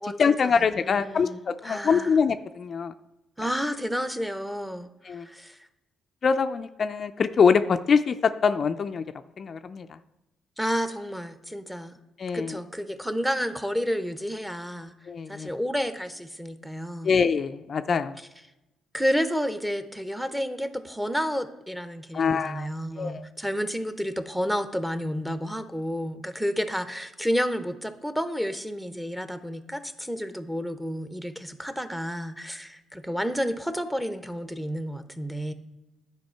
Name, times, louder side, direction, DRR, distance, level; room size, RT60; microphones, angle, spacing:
voice 1, 0.0-2.9 5.0-5.3 6.2-9.0 9.4-10.0 12.2-12.6 15.1-15.5 17.0-18.2 22.1-22.7 23.0-23.2, left 6 dB, 45° left, 9 dB, 0.3 m, -24 dB
voice 2, 0.8-1.4 1.6-2.1 3.4-5.6 10.6-11.9 12.3-14.9 15.3-17.1 18.9-35.5, equal, 5° right, 10 dB, 0.7 m, -30 dB
10.5 x 4.7 x 4.5 m, 0.96 s
cardioid pair, 80°, 0 cm